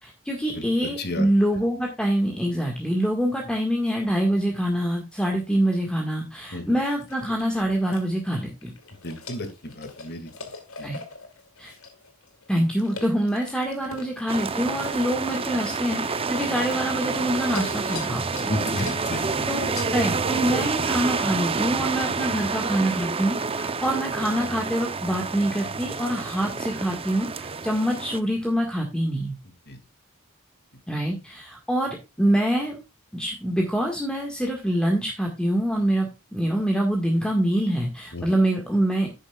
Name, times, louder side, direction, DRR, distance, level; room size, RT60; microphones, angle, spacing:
voice 1, 0.0-8.7 10.8-11.0 11.6-11.7 12.5-18.9 19.5-29.3 30.9-32.8 33.1-39.1, right 1 dB, 5° left, 1 dB, 1.6 m, -25 dB
voice 2, 0.5-1.3 6.5-6.7 9.0-10.5 10.8-10.9 18.5-19.5 29.7-29.8 38.1-38.4, left 1 dB, 50° left, 8 dB, 2.1 m, -33 dB
sound 1, 6.9-8.1 8.6-16.5 16.8-20.3, left 4 dB, 70° left, 2.5 m, -42 dB
sound 2, 14.3-28.2, right 4 dB, 25° right, 0.6 m, -28 dB
11.5 x 9.2 x 2.3 m, 0.25 s
head